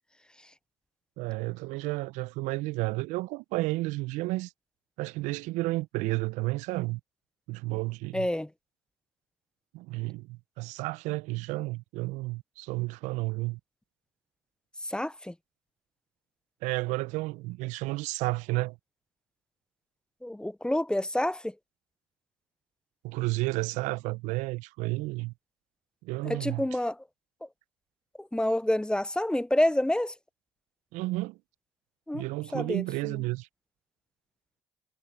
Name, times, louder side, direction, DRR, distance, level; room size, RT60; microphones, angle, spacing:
voice 1, 1.2-4.5 5.0-7.0 7.5-8.3 9.7-13.6 16.6-18.8 23.0-25.3 26.0-26.7 30.9-31.4 32.1-33.5, right 21 dB, 70° right, 1.0 m, -32 dB
voice 2, 8.1-8.5 14.9-15.3 20.2-21.5 26.2-27.0 27.4-27.5 28.2-30.1 32.1-32.2 32.5-33.2, left 1 dB, 5° left, 0.7 m, -28 dB
hypercardioid pair, 55°, 13 cm